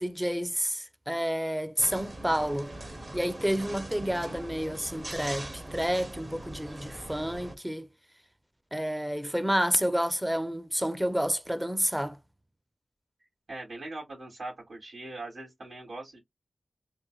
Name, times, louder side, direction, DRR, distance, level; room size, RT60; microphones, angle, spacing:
voice 1, 0.0-2.7 3.1-7.9 8.7-12.2, equal, 10° right, 0.5 m, -29 dB
sound 1, 1.8-7.6, right 1 dB, 40° right, 0.8 m, -41 dB
voice 2, 13.5-16.2, right 2 dB, 80° right, 2.6 m, -41 dB
4.3 x 2.5 x 2.3 m
wide cardioid pair, 60°, 0 cm